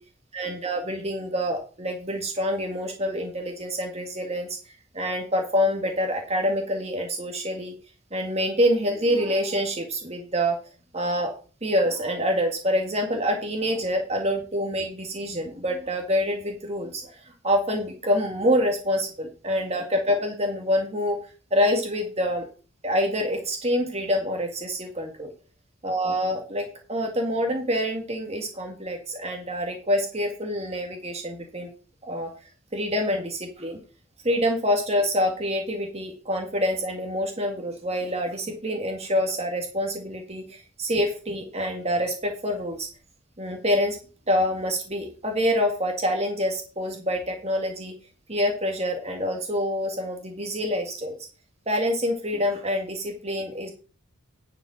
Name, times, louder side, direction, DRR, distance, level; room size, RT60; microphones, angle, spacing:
voice 1, 0.3-4.5 4.9-7.7 8.1-10.6 10.9-11.3 11.6-21.2 21.5-22.5 22.8-25.3 25.8-31.7 32.0-32.3 32.7-33.8 34.2-42.9 43.4-44.0 44.3-47.9 48.3-51.2 51.7-53.7, equal, 30° right, 2 dB, 1.8 m, -26 dB
11.0 x 5.2 x 6.3 m, 0.38 s
head